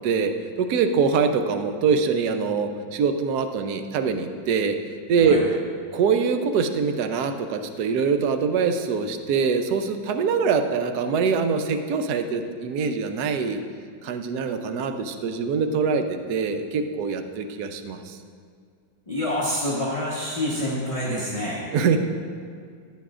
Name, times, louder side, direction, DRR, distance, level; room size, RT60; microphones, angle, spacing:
voice 1, 0.0-4.8 5.1-5.4 5.9-13.6 14.0-18.2 20.9-21.2 21.7-22.0, right 5 dB, 65° right, 7 dB, 1.1 m, -24 dB
voice 2, 19.1-21.6, left 1 dB, 20° left, -6 dB, 1.1 m, -27 dB
15.0 x 10.5 x 2.5 m, 2.2 s
omnidirectional pair, 2.1 m